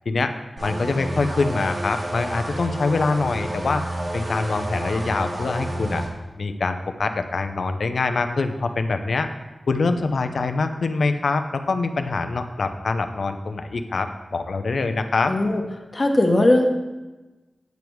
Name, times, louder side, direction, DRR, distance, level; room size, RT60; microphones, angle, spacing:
voice 1, 0.6-3.8 4.1-6.0 6.4-9.3 9.7-14.1 14.3-15.3, left 3 dB, 80° left, 8 dB, 0.7 m, -24 dB
sound 1, 0.6-6.1, right 1 dB, 55° right, 1.9 m, -30 dB
voice 2, 15.3-15.6 15.9-16.7, left 1 dB, 35° left, 2 dB, 1.3 m, -18 dB
9.3 x 7.1 x 4.7 m, 1.1 s
wide cardioid pair, 85°, 0 cm